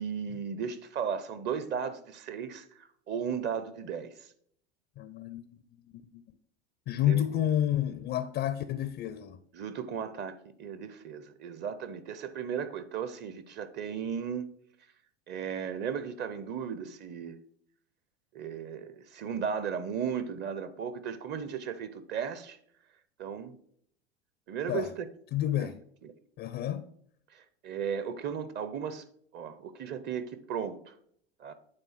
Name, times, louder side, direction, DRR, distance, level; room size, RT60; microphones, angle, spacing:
voice 1, 0.0-4.3 7.1-7.3 9.5-14.5 15.3-17.4 18.3-22.6 23.2-23.6 24.5-25.1 25.6-25.7 26.0-26.1 27.3-29.0 29.3-31.0 31.4-31.5, right 7 dB, 35° right, 0.7 m, -36 dB
voice 2, 5.0-5.6 5.9-6.2 6.9-9.4 24.7-24.9 25.3-25.8 26.4-26.9, left 11 dB, 30° left, 0.4 m, -30 dB
8.9 x 3.5 x 4.2 m
hypercardioid pair, 95°, 32 cm